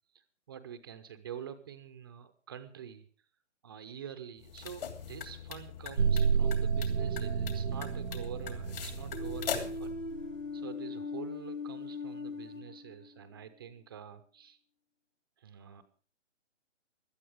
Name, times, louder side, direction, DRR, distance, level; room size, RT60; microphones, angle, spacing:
voice 1, 0.1-3.1 3.6-10.0 10.5-14.6 15.4-15.8, right 9 dB, 20° right, 10 dB, 0.6 m, -47 dB
sound 1, 4.4-9.9, left 8 dB, 50° left, 2.8 m, -41 dB
sound 2, 6.0-10.2, right 6 dB, 85° right, 1.2 m, -31 dB
sound 3, 9.1-13.4, left 4 dB, 85° left, 1.4 m, -40 dB
17.0 x 12.5 x 4.9 m, 0.40 s
figure-of-eight pair, 145°, 37 cm